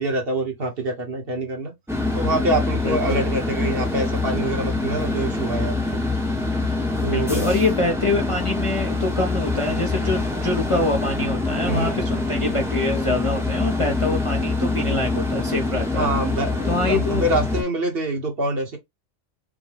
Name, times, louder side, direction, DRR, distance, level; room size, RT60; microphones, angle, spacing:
voice 1, 0.0-1.7 2.1-6.0 7.0-7.4 11.7-12.0 15.9-18.8, right 2 dB, 50° right, 1.3 m, -25 dB
sound 1, 1.9-17.6, left 2 dB, ahead, 0.8 m, -25 dB
voice 2, 2.8-3.3 6.8-16.1 16.6-17.3, left 2 dB, 35° left, 0.6 m, -25 dB
5.1 x 2.2 x 3.3 m
omnidirectional pair, 1.3 m